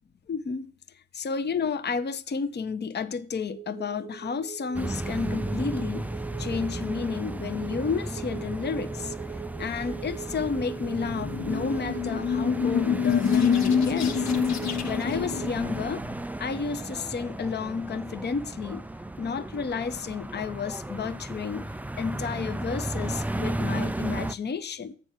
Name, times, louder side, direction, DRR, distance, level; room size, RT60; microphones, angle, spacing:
voice 1, 0.3-6.1 6.4-14.3 14.9-16.0 16.4-18.9 19.2-25.0, left 5 dB, 35° left, 0.7 m, -31 dB
sound 1, 3.5-15.5, right 9 dB, 60° right, 1.1 m, -41 dB
sound 2, 4.7-24.3, right 1 dB, 5° right, 0.4 m, -34 dB
sound 3, 10.8-16.2, left 7 dB, 55° left, 1.0 m, -27 dB
7.9 x 6.2 x 4.3 m
hypercardioid pair, 45°, 32 cm